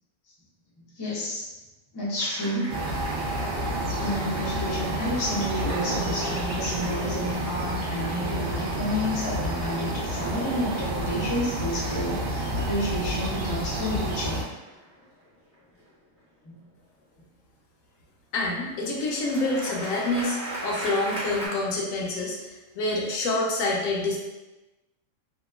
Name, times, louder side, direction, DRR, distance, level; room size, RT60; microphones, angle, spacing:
voice 1, 0.8-1.4 1.9-2.7 4.0-14.4 16.4-16.6, left 1 dB, 35° left, -6 dB, 0.4 m, -30 dB
sound 1, 2.2-16.2 18.9-21.5, right 1 dB, 15° right, 0.6 m, -41 dB
sound 2, 2.7-14.4, right 1 dB, 60° right, 0.6 m, -30 dB
voice 2, 18.3-20.4 20.6-24.2, left 2 dB, 80° left, -2 dB, 1.0 m, -27 dB
2.8 x 2.1 x 2.3 m, 1.1 s
omnidirectional pair, 1.4 m